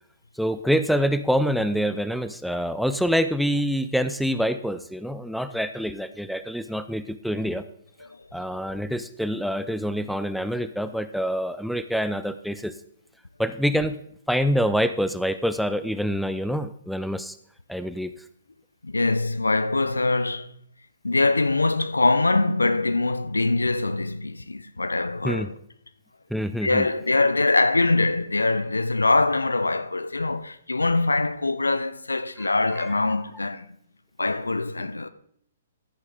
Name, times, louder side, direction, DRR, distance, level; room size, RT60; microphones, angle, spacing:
voice 1, 0.4-7.6 8.3-12.7 13.4-14.0 14.3-17.4 17.7-18.1 25.2-25.5 26.3-26.9, equal, ahead, 0.6 m, -26 dB
voice 2, 18.8-20.5 21.0-25.5 26.6-33.7 34.2-35.1, left 2 dB, 85° left, 0.6 m, -23 dB
14.5 x 6.8 x 4.0 m
figure-of-eight pair, 120°, 0 cm